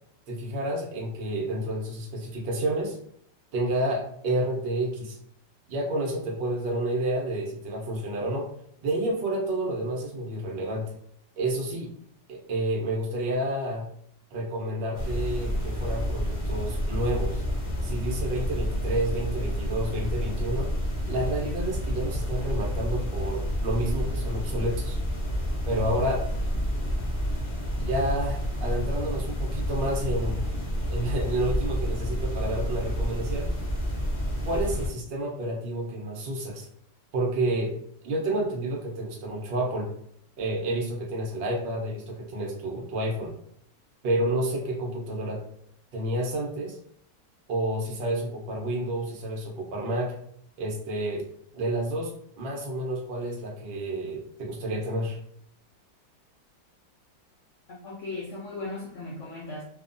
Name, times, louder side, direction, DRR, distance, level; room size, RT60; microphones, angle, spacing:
voice 1, 0.3-3.0 3.5-5.2 5.7-8.5 8.8-10.9 11.4-11.9 12.3-13.9 14.3-17.4 17.8-20.7 21.1-25.0 25.6-26.2 27.9-30.5 30.9-33.5 34.4-36.7 37.1-37.7 38.0-39.9 40.4-43.3 44.0-45.4 45.9-46.8 47.5-50.2 50.6-51.2 51.5-55.2, right 1 dB, 65° right, -1 dB, 0.6 m, -30 dB
sound 1, 14.9-34.9, equal, 45° left, 0.4 m, -29 dB
voice 2, 57.7-59.6, left 2 dB, 85° left, -5 dB, 0.6 m, -37 dB
2.9 x 2.1 x 2.5 m, 0.68 s
omnidirectional pair, 2.0 m